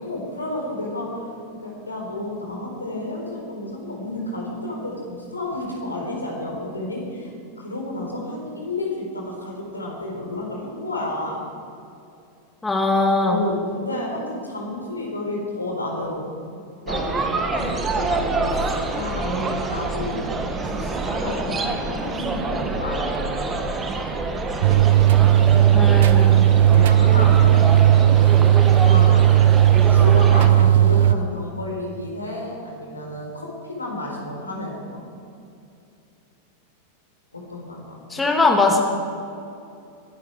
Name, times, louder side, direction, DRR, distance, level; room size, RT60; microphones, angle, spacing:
voice 1, 0.0-11.4 13.2-20.3 20.6-23.5 26.1-28.4 28.8-29.4 29.9-35.0 37.3-38.2, left 1 dB, 80° left, -1 dB, 4.3 m, -31 dB
voice 2, 12.6-13.4 25.7-26.4 38.1-38.8, left 3 dB, 10° left, 1 dB, 2.5 m, -20 dB
sound 1, 16.9-30.5, right 3 dB, 20° right, 1.6 m, -26 dB
sound 2, 24.6-31.2, right 12 dB, 55° right, 0.6 m, -15 dB
22.5 x 12.5 x 4.8 m, 2.6 s
figure-of-eight pair, 90°, 0 cm